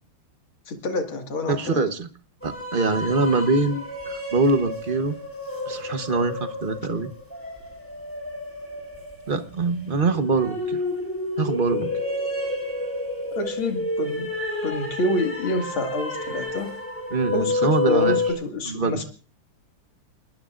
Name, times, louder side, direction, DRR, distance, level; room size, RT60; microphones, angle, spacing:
voice 1, 0.7-1.8 13.3-14.3 14.6-16.7 17.3-19.0, left 1 dB, 85° left, 4 dB, 2.9 m, -28 dB
voice 2, 1.5-2.1 2.4-3.9 4.3-5.1 5.7-7.1 9.3-10.8 11.4-11.9 17.1-18.2 18.7-19.0, right 3 dB, 35° right, 9 dB, 1.0 m, -23 dB
sound 1, 2.4-18.3, left 2 dB, 5° left, 6.9 m, -30 dB
30.0 x 19.0 x 2.5 m, 0.39 s
omnidirectional pair, 2.2 m